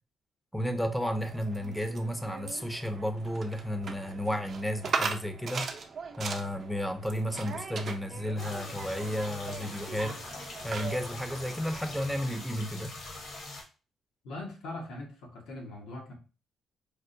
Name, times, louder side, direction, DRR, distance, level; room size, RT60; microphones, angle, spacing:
voice 1, 0.5-5.7 6.2-10.2 10.6-12.9, equal, 5° left, 0.5 m, -33 dB
sound 1, 1.0-11.9, right 5 dB, 50° right, 0.5 m, -39 dB
sound 2, 8.4-13.6, left 2 dB, 65° left, 1.1 m, -43 dB
voice 2, 14.2-16.1, left 2 dB, 90° left, 1.0 m, -41 dB
4.5 x 2.1 x 2.5 m
cardioid pair, 90°, 0 cm